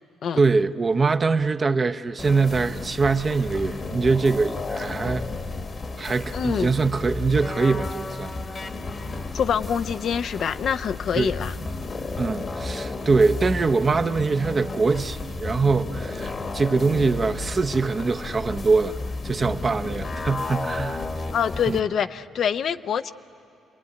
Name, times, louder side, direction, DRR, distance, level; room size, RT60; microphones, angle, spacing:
voice 1, 0.4-5.3 6.0-8.3 11.2-11.3 12.2-19.0 19.2-21.1 21.7-21.8, right 4 dB, 35° right, 0.8 m, -23 dB
sound 1, 2.2-21.8, left 3 dB, 40° left, 1.2 m, -33 dB
voice 2, 6.3-6.7 9.3-11.5 21.3-23.1, left 8 dB, 60° left, 0.6 m, -25 dB
28.5 x 21.5 x 9.7 m
cardioid pair, 90°, 0 cm